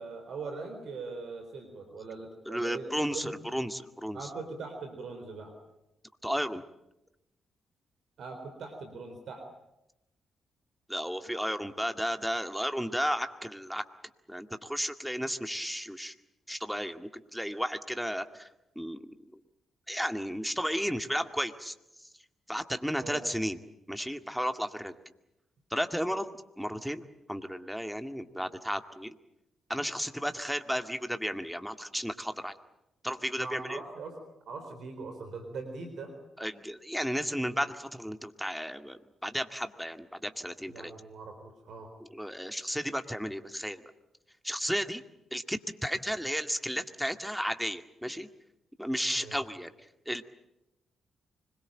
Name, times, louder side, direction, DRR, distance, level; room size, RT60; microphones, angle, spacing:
voice 1, 0.0-3.3 4.1-5.5 8.2-9.5 23.0-23.3 33.4-34.1 34.5-36.1 40.7-41.9 49.1-49.4, right 4 dB, 65° right, 5 dB, 4.1 m, -41 dB
voice 2, 2.5-4.3 6.2-6.6 10.9-13.8 14.3-16.1 16.5-18.5 18.8-19.4 19.9-21.7 22.5-23.6 23.9-24.9 25.7-26.3 26.6-27.0 27.3-29.2 29.7-32.5 33.0-33.8 36.4-40.9 42.0-43.8 44.4-45.0 45.3-48.3 48.8-49.7 50.1-50.2, equal, ahead, 8 dB, 2.1 m, -33 dB
25.5 x 22.0 x 9.0 m, 0.89 s
hypercardioid pair, 40°, 0 cm